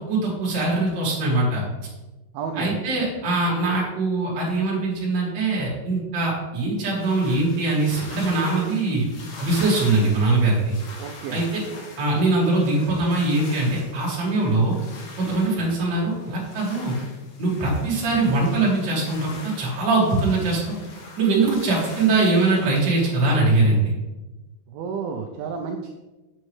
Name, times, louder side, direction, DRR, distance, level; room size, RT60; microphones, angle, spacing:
voice 1, 0.1-1.6 2.5-9.1 9.4-10.8 11.3-11.6 12.0-14.8 15.2-16.9 17.4-19.3 19.6-20.7 21.2-23.9, right 2 dB, 40° right, -5 dB, 1.8 m, -22 dB
voice 2, 2.3-2.8 11.0-11.5 24.7-25.9, right 6 dB, 85° right, 4 dB, 2.1 m, -31 dB
sound 1, 6.9-23.3, left 2 dB, 65° left, 1.8 m, -42 dB
7.5 x 6.3 x 3.1 m, 1.1 s
omnidirectional pair, 4.9 m